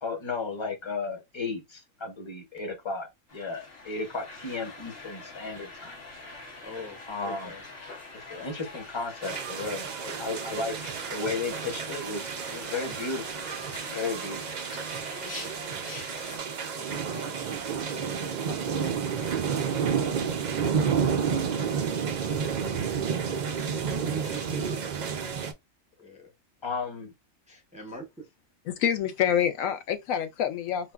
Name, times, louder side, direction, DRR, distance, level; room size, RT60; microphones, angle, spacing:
voice 1, 0.0-3.1 3.3-6.0 7.1-7.5 8.3-13.2 13.9-14.4 26.6-27.1, left 4 dB, 25° left, 0.7 m, -34 dB
sound 1, 3.3-16.4, left 3 dB, 50° left, 1.0 m, -45 dB
voice 2, 6.6-7.6 11.6-12.1 15.2-15.5 16.8-18.8 19.2-19.6 23.4-24.8 26.0-26.3 27.5-28.0, right 1 dB, 10° right, 0.5 m, -43 dB
sound 2, 9.2-25.5, right 6 dB, 85° right, 0.4 m, -30 dB
voice 3, 28.6-30.9, left 9 dB, 85° left, 1.0 m, -27 dB
4.3 x 2.2 x 2.3 m
omnidirectional pair, 1.4 m